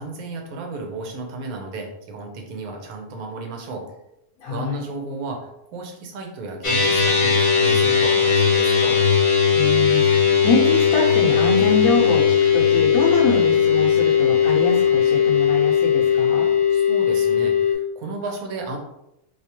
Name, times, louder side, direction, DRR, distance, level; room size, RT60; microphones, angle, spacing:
voice 1, 0.0-3.9 4.4-9.0 16.7-18.8, right 3 dB, 70° right, 2 dB, 1.2 m, -33 dB
voice 2, 4.4-4.8 9.5-16.5, left 3 dB, 70° left, -4 dB, 1.0 m, -25 dB
sound 1, 6.6-17.7, left 7 dB, 35° left, 0.5 m, -18 dB
3.4 x 2.8 x 2.9 m, 0.83 s
omnidirectional pair, 1.6 m